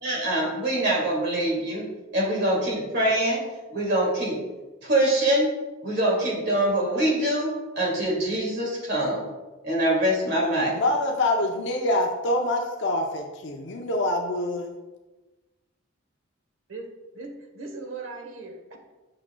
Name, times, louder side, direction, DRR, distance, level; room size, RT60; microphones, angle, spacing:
voice 1, 0.0-1.8 2.1-3.4 3.7-4.4 4.8-5.5 5.8-9.2 9.6-10.7, right 1 dB, 50° right, -3 dB, 2.3 m, -24 dB
voice 2, 10.7-14.7, left 1 dB, 55° left, 2 dB, 0.6 m, -25 dB
voice 3, 17.1-18.9, right 3 dB, 70° right, 3 dB, 1.1 m, -39 dB
8.6 x 6.1 x 2.3 m, 1.1 s
head